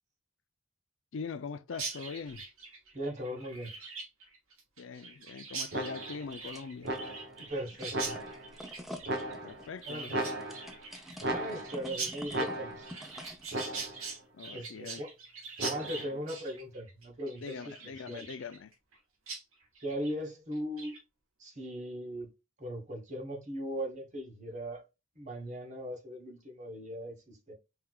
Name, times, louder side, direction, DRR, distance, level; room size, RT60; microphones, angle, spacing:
voice 1, 1.1-2.4 4.8-6.9 9.4-10.6 14.3-15.0 16.0-16.2 17.4-18.7, left 5 dB, 60° left, 0.4 m, -42 dB
Chirp tweet, 1.7-19.0 19.3-19.4 19.7-20.1 20.5-21.0, right 4 dB, 80° right, 1.6 m, -43 dB
voice 2, 2.9-3.7 7.5-8.2 9.9-10.1 11.3-12.9 14.5-15.1 15.6-17.5 17.8-18.2 19.8-20.9 21.4-22.3 22.6-24.8 25.1-27.5, equal, 35° right, 1.3 m, -39 dB
sound 1, 5.7-6.3 6.8-7.4 7.9-8.6 9.1-9.7 10.1-10.9 11.2-11.9 12.3-13.0 13.5-14.1 15.6-16.2, right 1 dB, 50° right, 0.9 m, -36 dB
sound 2, 6.3-7.0 7.3-13.8, equal, ahead, 0.5 m, -48 dB
4.5 x 3.6 x 2.3 m
head